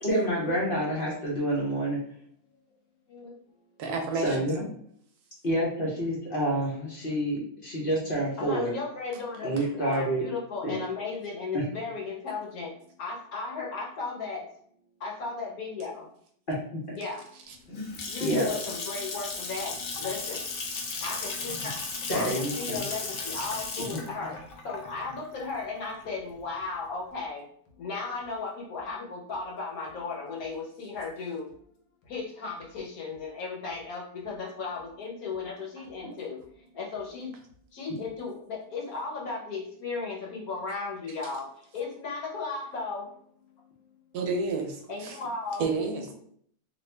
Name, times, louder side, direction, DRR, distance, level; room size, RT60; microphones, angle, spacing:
voice 1, 0.0-2.0 4.1-4.6 5.4-8.7 9.4-10.2 10.6-10.8 11.5-11.6 16.5-16.6 16.9-17.0 17.7-17.8 18.2-18.5 22.1-22.8 23.8-24.0 36.0-36.1, right 1 dB, 45° left, -5 dB, 0.8 m, -28 dB
voice 2, 3.8-4.5 17.5-17.6 44.1-45.2 45.6-46.1, right 4 dB, 75° right, 3 dB, 1.1 m, -30 dB
voice 3, 8.4-12.7 13.0-14.5 15.0-16.1 16.9-17.2 18.1-20.4 21.0-21.8 22.1-24.3 24.6-27.4 27.8-31.5 32.1-36.4 36.7-37.3 37.7-43.1 44.9-45.7, left 4 dB, 65° left, -2 dB, 1.2 m, -35 dB
Water tap faucet / Sink (filling or washing) / Splash splatter, 17.5-26.4, left 4 dB, 85° left, 0.5 m, -36 dB
3.1 x 2.4 x 3.2 m, 0.63 s
omnidirectional pair, 1.7 m